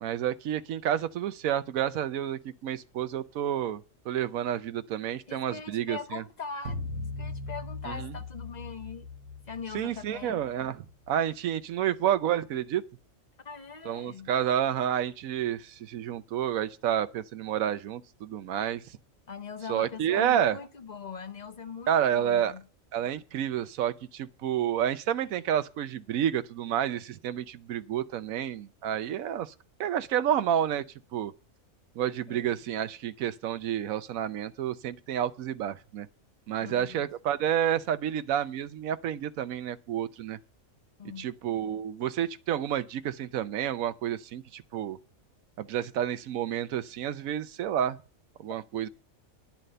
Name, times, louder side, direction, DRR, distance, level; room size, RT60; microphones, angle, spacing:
voice 1, 0.0-6.2 7.9-8.1 9.7-12.8 13.8-19.0 19.7-20.6 21.9-22.5 22.9-29.5 29.8-30.8 31.1-31.3 32.0-36.1 36.5-40.4 41.2-45.0 45.6-48.0 48.4-48.9, right 10 dB, 75° right, 1.2 m, -30 dB
voice 2, 5.3-6.8 7.2-9.1 9.5-10.4 13.4-14.3 19.3-22.7 32.3-32.6 36.6-37.1 41.0-41.3, left 5 dB, 40° left, 0.7 m, -41 dB
sound 1, 6.7-11.1, left 2 dB, 60° right, 1.5 m, -39 dB
10.5 x 7.5 x 6.7 m
omnidirectional pair, 1.5 m